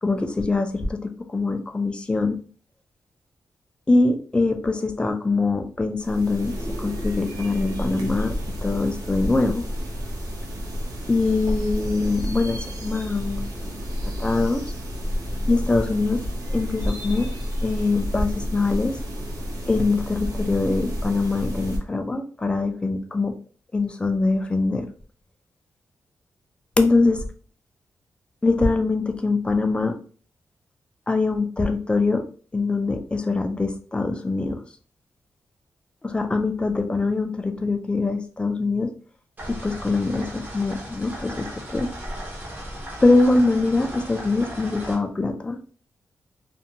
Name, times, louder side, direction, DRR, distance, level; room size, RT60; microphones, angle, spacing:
voice 1, 0.0-2.4 3.9-6.5 6.8-8.3 8.6-9.6 11.1-13.8 14.2-14.6 15.5-16.2 16.5-17.3 17.6-18.9 19.7-23.3 23.7-24.9 26.8-27.2 28.4-29.9 31.1-32.2 32.5-34.6 36.0-38.9 39.5-41.9 43.0-45.7, left 3 dB, 15° left, 5 dB, 0.3 m, -23 dB
sound 1, 6.0-21.8, equal, 75° right, 0.7 m, -30 dB
sound 2, 39.4-44.9, equal, 30° right, 0.8 m, -36 dB
2.5 x 2.2 x 2.7 m, 0.42 s
wide cardioid pair, 160°, 6 cm